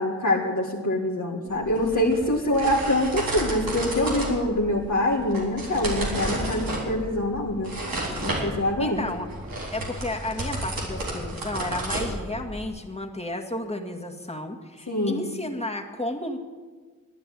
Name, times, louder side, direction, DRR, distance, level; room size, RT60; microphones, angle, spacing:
voice 1, 0.0-7.7 8.2-9.0 14.9-15.3, left 1 dB, 55° left, -3 dB, 2.0 m, -25 dB
sound 1, 1.5-12.7, right 1 dB, 90° right, 4.0 m, -32 dB
voice 2, 8.6-9.3 9.7-16.4, left 1 dB, 20° left, 2 dB, 2.1 m, -32 dB
13.5 x 10.5 x 9.4 m, 1.5 s
cardioid pair, 50°, 34 cm